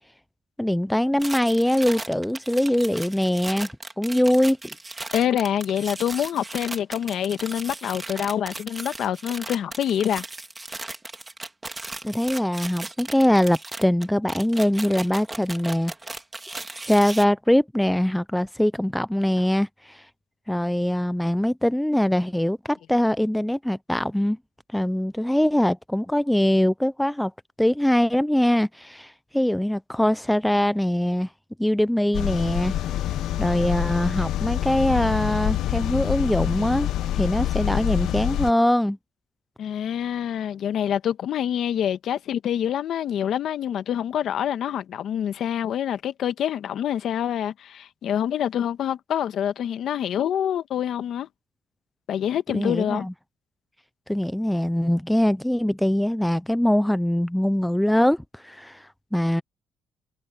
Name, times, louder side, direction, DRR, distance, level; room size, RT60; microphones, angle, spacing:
voice 1, 0.6-3.7 4.0-4.6 12.0-15.9 16.8-20.1 20.5-24.4 24.7-27.3 27.6-31.3 31.6-32.7 33.4-39.0 52.5-53.1 54.1-59.4, left 1 dB, 5° left, 0.3 m, -22 dB
sound 1, 1.2-17.2, right 2 dB, 15° right, 2.3 m, -37 dB
voice 2, 5.1-10.2 39.6-51.3 52.1-53.1, left 10 dB, 60° left, 1.3 m, -26 dB
sound 2, 32.1-38.5, left 13 dB, 75° left, 0.7 m, -26 dB
cardioid pair, 150°, 0 cm